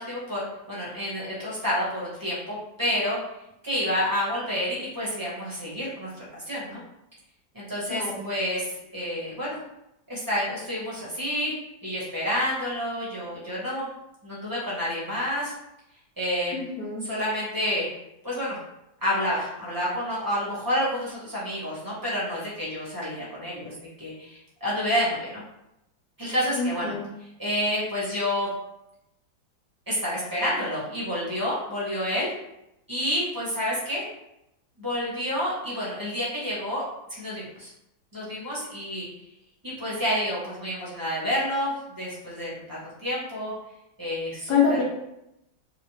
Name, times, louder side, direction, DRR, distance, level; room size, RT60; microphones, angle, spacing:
voice 1, 0.0-3.2 3.6-6.8 7.5-9.6 10.1-11.5 11.8-13.9 14.2-15.5 16.2-16.5 17.0-17.9 18.2-18.6 19.0-25.4 26.2-26.9 27.4-28.5 29.9-32.3 32.9-34.1 34.8-37.7 38.1-39.1 39.6-43.5 44.0-44.8, equal, 15° right, -8 dB, 0.9 m, -29 dB
voice 2, 16.5-17.0 26.5-27.1 44.5-44.8, left 6 dB, 70° left, -4 dB, 1.1 m, -25 dB
3.1 x 2.7 x 3.1 m, 0.85 s
omnidirectional pair, 2.0 m